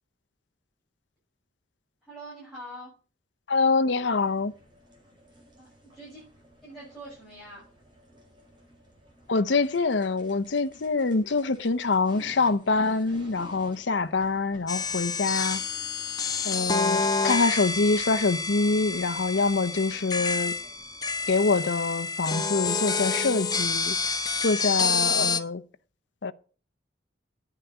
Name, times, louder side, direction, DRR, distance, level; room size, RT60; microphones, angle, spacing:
voice 1, 2.0-2.9 5.6-6.2 6.6-7.6, right 1 dB, ahead, 7.5 m, -44 dB
voice 2, 3.5-4.5 9.3-15.6 16.4-20.6 21.3-24.0 24.4-25.6 26.2-26.3, left 3 dB, 80° left, 0.7 m, -25 dB
sound 1, 4.0-21.5, equal, 25° right, 5.7 m, -54 dB
sound 2, 14.7-25.4, left 4 dB, 20° left, 0.9 m, -28 dB
9.8 x 9.4 x 7.9 m
head